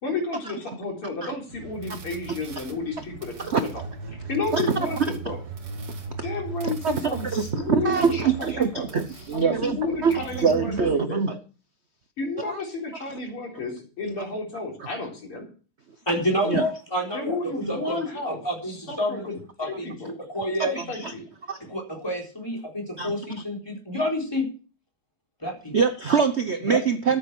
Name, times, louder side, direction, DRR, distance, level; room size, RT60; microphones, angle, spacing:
voice 1, 0.0-3.7 4.3-5.4 6.2-8.8 9.3-11.2 12.2-15.5 17.1-20.1 20.9-21.3, left 3 dB, 80° left, 4.7 m, -32 dB
sound 1, 1.5-10.9, right 4 dB, 80° right, 3.0 m, -38 dB
voice 2, 7.3-11.4 12.4-12.6 16.4-16.6 20.6-21.1 21.5-21.6 23.0-23.4 25.7-27.2, right 6 dB, 60° right, 0.6 m, -24 dB
voice 3, 16.1-17.4 17.7-18.0 18.2-20.8 21.7-24.5 25.4-25.8 26.7-26.8, equal, 10° left, 4.0 m, -28 dB
13.5 x 7.7 x 6.1 m
omnidirectional pair, 2.4 m